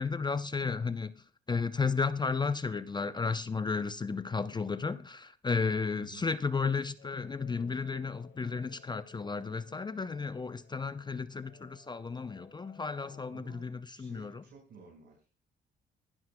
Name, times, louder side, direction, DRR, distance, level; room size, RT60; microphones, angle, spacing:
voice 1, 0.0-14.4, left 4 dB, 20° left, 0.6 m, -33 dB
voice 2, 5.9-6.3 13.3-15.5, right 5 dB, 65° right, 5.0 m, -54 dB
sound 1, 7.0-13.3, left 5 dB, 85° left, 4.5 m, -59 dB
20.5 x 12.5 x 2.2 m
cardioid pair, 90°, 20 cm